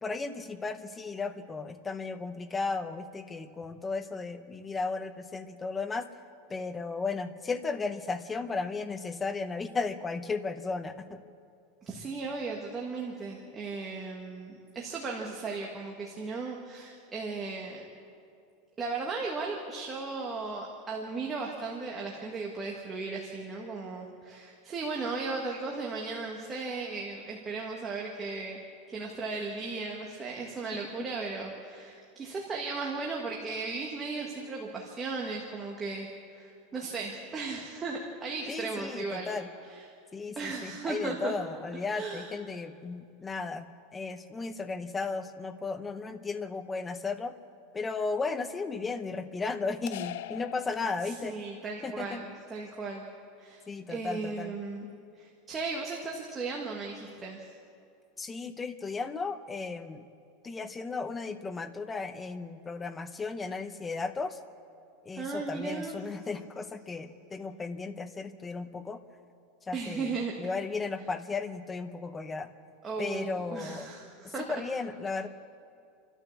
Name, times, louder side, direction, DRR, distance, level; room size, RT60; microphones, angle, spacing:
voice 1, 0.0-6.1 6.5-11.2 38.5-39.5 40.1-47.4 47.7-51.4 51.8-52.2 53.7-54.6 58.2-60.1 60.4-64.4 65.0-69.0 69.7-72.5 73.0-73.9 74.2-75.3, left 4 dB, 10° left, 9 dB, 0.7 m, -35 dB
voice 2, 11.8-17.9 18.8-28.6 28.9-36.1 36.3-39.4 39.6-39.8 40.3-41.3 41.9-42.3 51.0-53.1 53.4-53.6 53.9-54.9 55.2-57.5 65.1-66.0 69.7-70.5 72.8-74.4, right 4 dB, 15° right, -1 dB, 1.6 m, -36 dB
sound 1, 49.9-51.5, left 12 dB, 65° left, 0.4 m, -41 dB
29.0 x 12.5 x 7.2 m, 2.4 s
supercardioid pair, 175°, 0 cm